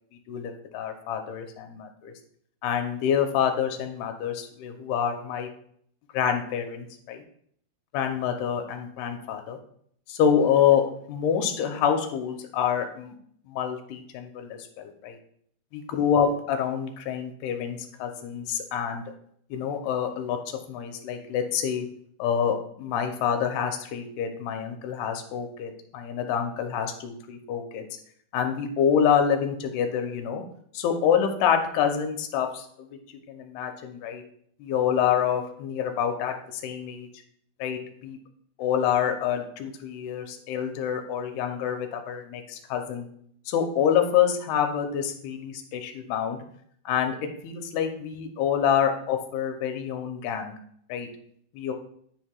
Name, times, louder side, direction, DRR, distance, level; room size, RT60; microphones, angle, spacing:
voice 1, 0.3-2.1 2.6-5.5 6.1-7.2 7.9-9.6 10.1-13.1 13.5-15.2 15.7-19.0 19.5-20.4 20.7-21.9 22.2-27.8 28.3-30.4 30.7-33.0 33.3-34.2 34.6-37.1 37.6-38.2 38.6-43.1 43.5-46.4 46.9-47.2 47.4-50.5 50.9-51.1 51.5-51.7, left 8 dB, 80° left, 5 dB, 2.6 m, -27 dB
9.8 x 4.5 x 2.3 m, 0.64 s
omnidirectional pair, 4.7 m